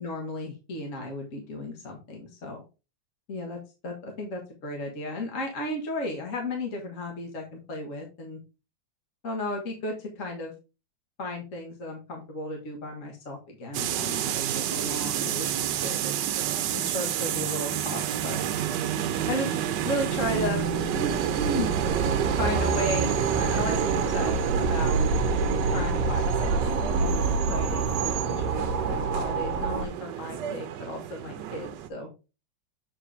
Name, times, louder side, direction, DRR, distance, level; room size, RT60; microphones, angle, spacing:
voice 1, 0.0-2.6 3.3-3.6 3.8-8.4 9.2-10.5 11.2-16.1 16.4-18.4 19.3-19.6 19.8-20.6 21.0-21.1 21.4-21.8 22.4-25.0 25.7-32.1, left 1 dB, 45° left, 1 dB, 1.7 m, -34 dB
sound 1, 13.7-31.9, right 10 dB, 75° right, 1.2 m, -30 dB
sound 2, 20.2-29.9, right 4 dB, 55° right, 1.2 m, -27 dB
7.6 x 4.8 x 3.4 m, 0.30 s
omnidirectional pair, 2.0 m